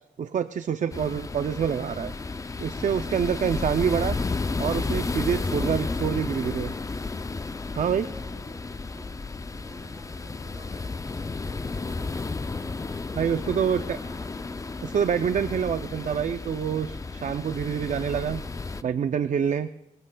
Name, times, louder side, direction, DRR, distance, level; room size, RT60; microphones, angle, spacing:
voice 1, 0.2-2.1 2.6-4.2 4.6-6.7 7.8-8.1 13.2-14.0 14.8-18.4 18.8-19.7, right 7 dB, 55° right, 10 dB, 0.5 m, -26 dB
sound 1, 0.9-18.8, left 3 dB, 20° left, 0.4 m, -32 dB
voice 2, 5.2-6.3 7.8-8.6 8.9-9.1 9.5-13.0 13.4-14.3, right 1 dB, 15° right, -3 dB, 6.7 m, -49 dB
25.5 x 19.0 x 2.3 m, 0.95 s
wide cardioid pair, 105°, 15 cm